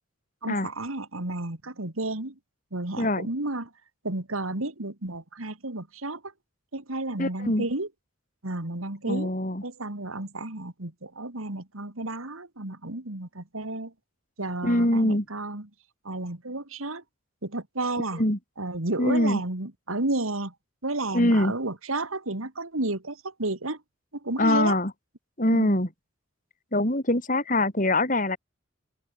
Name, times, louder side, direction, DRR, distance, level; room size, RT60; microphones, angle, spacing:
voice 1, 0.4-2.3 2.7-3.7 4.0-6.3 6.7-7.9 8.4-9.3 9.6-13.9 14.4-15.7 16.0-17.0 17.4-18.2 18.6-20.5 20.8-23.8 24.2-24.8 25.5-25.8, right 2 dB, 85° right, 2.8 m, -32 dB
voice 2, 3.0-3.3 7.2-7.7 9.1-9.6 14.6-15.2 18.2-18.4 19.0-19.4 21.1-21.5 24.4-24.9 25.4-25.9 26.7-28.4, left 1 dB, 40° left, 4.3 m, -23 dB
head